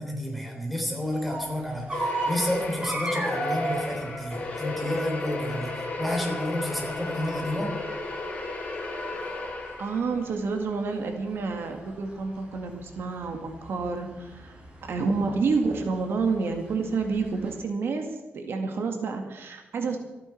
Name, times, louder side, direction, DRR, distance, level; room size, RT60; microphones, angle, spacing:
voice 1, 0.0-7.7, left 1 dB, ahead, 0 dB, 3.7 m, -30 dB
sound 1, 1.1-17.6, right 2 dB, 25° right, 6.0 m, -37 dB
sound 2, 1.9-10.2, left 2 dB, 35° left, 3.5 m, -34 dB
voice 2, 9.8-14.5 14.9-18.1 18.3-20.0, right 4 dB, 70° right, 4 dB, 2.0 m, -29 dB
26.5 x 9.7 x 4.5 m, 1.2 s
wide cardioid pair, 135°, 4 cm